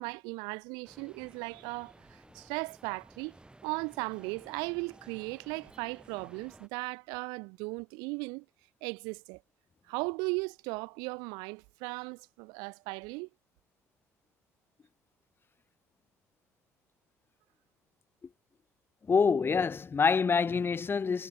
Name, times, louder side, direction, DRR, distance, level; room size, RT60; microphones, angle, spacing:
voice 1, 0.0-3.4 3.6-8.5 8.8-9.4 9.9-13.3, right 30 dB, 75° right, 1.9 m, -37 dB
sound 1, 0.8-6.7, right 2 dB, 15° right, 4.8 m, -56 dB
voice 2, 19.1-21.3, left 5 dB, 30° left, 0.6 m, -26 dB
hypercardioid pair, 50°, 7 cm